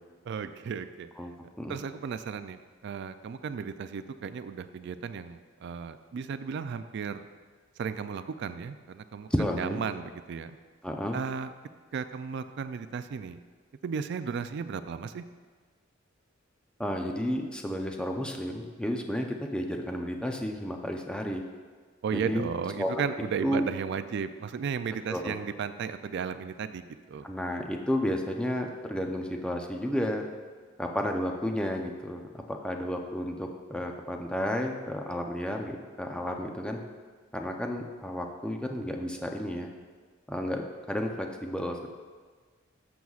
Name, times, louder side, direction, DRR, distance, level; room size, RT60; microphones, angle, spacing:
voice 1, 0.3-1.1 1.7-7.2 7.8-10.6 11.1-11.5 11.9-13.4 13.8-15.2 22.0-26.8 27.1-27.3, right 6 dB, 60° right, 11 dB, 0.3 m, -34 dB
voice 2, 9.3-9.8 10.8-11.2 16.8-21.4 22.1-22.5 22.8-23.0 23.4-23.6 25.1-25.3 27.2-30.3 30.8-36.8 37.3-39.7 40.3-41.9, equal, 5° left, 2 dB, 0.6 m, -32 dB
12.0 x 7.0 x 2.4 m, 1.5 s
head